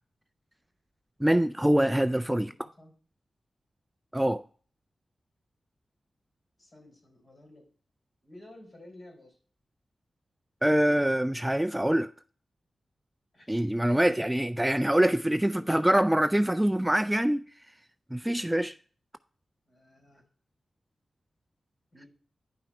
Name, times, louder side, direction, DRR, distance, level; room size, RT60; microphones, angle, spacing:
voice 1, 1.2-2.5 4.1-4.4 10.6-12.1 13.5-17.4 18.1-18.7, right 1 dB, 10° right, 0.3 m, -24 dB
voice 2, 2.2-2.9 6.6-7.6 8.2-9.4 13.3-13.6 15.5-15.8 19.7-20.2 21.9-22.1, left 1 dB, 55° left, 4.1 m, -52 dB
10.0 x 5.7 x 4.3 m
cardioid pair, 65°, 0 cm